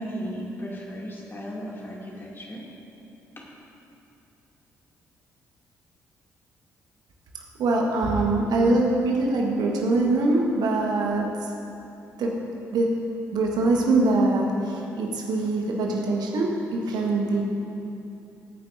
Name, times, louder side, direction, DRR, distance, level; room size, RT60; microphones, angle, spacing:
voice 1, 0.0-2.6 3.4-3.5, equal, 25° left, -3 dB, 2.5 m, -35 dB
voice 2, 7.6-11.3 12.2-12.3 12.7-12.9 13.3-17.4, right 2 dB, 55° right, 0 dB, 1.3 m, -23 dB
20.5 x 9.4 x 2.6 m, 2.8 s
figure-of-eight pair, 40°, 8 cm